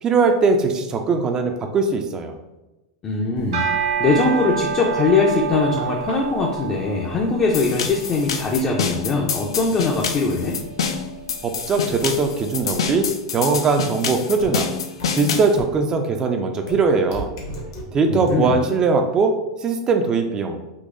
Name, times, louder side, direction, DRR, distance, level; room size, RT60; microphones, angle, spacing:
voice 1, 0.0-2.3 11.4-14.7 15.1-17.3 17.9-20.6, right 4 dB, 30° right, 5 dB, 0.4 m, -20 dB
voice 2, 3.0-3.7 4.0-10.6 18.1-18.6, left 3 dB, 30° left, -1 dB, 0.5 m, -21 dB
sound 1, 3.4-12.7, right 7 dB, 80° right, 1.2 m, -29 dB
sound 2, 7.5-15.5, left 6 dB, 85° left, 0.4 m, -27 dB
sound 3, 14.4-14.5 15.0-15.1 15.6-15.7 16.7-16.8 17.1-17.8 18.3-18.4, left 1 dB, 70° left, 1.1 m, -33 dB
3.8 x 2.6 x 2.5 m, 1.0 s
hypercardioid pair, 115°, 3 cm